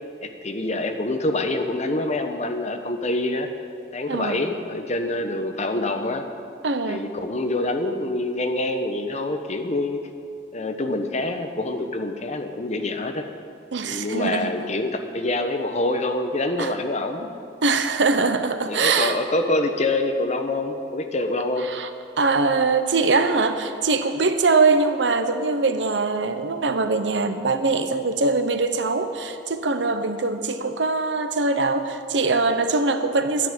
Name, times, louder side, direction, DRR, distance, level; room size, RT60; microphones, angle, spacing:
voice 1, 0.2-3.5 3.9-6.2 6.9-10.0 10.5-13.2 13.8-17.3 18.7-21.7, left 2 dB, 40° left, 6 dB, 1.1 m, -26 dB
voice 2, 4.1-4.4 6.6-7.0 13.7-14.7 16.6-16.7 17.6-19.2 21.6-21.9 22.2-33.5, right 3 dB, 80° right, 9 dB, 1.0 m, -22 dB
12.0 x 10.0 x 9.0 m, 2.5 s
head